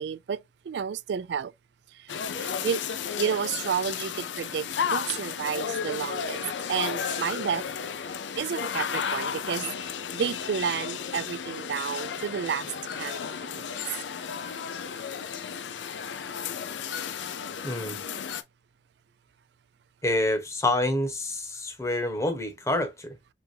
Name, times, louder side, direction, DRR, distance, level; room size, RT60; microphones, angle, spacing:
voice 1, 0.0-1.5 1.9-2.8 3.2-6.4 6.7-7.6 8.4-12.7 13.0-13.6, right 7 dB, 65° right, 0.3 m, -31 dB
sound 1, 2.1-18.4, left 7 dB, 90° left, 0.5 m, -33 dB
voice 2, 17.6-18.0 20.0-23.1, left 1 dB, 15° left, 1.1 m, -27 dB
5.0 x 3.5 x 2.7 m
head